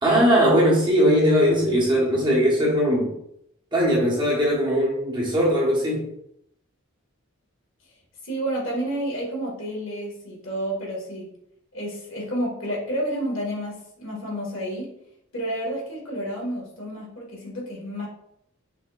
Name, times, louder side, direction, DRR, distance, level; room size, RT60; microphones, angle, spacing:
voice 1, 0.0-3.1 3.7-6.1, equal, 20° right, -5 dB, 1.2 m, -20 dB
voice 2, 8.2-11.3 11.7-14.9 15.3-18.1, right 1 dB, 65° left, -3 dB, 1.7 m, -30 dB
5.7 x 3.7 x 2.4 m, 0.77 s
head